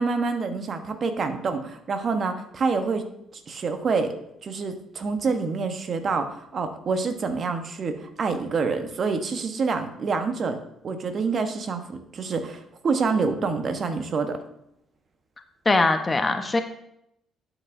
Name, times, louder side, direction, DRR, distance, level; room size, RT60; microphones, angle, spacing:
voice 1, 0.0-3.1 3.5-4.2 4.4-10.6 10.8-14.4, right 4 dB, 50° right, 7 dB, 1.1 m, -27 dB
voice 2, 15.7-16.6, left 2 dB, 25° left, 7 dB, 0.9 m, -21 dB
11.5 x 6.1 x 2.7 m, 0.77 s
hypercardioid pair, 50°, 0 cm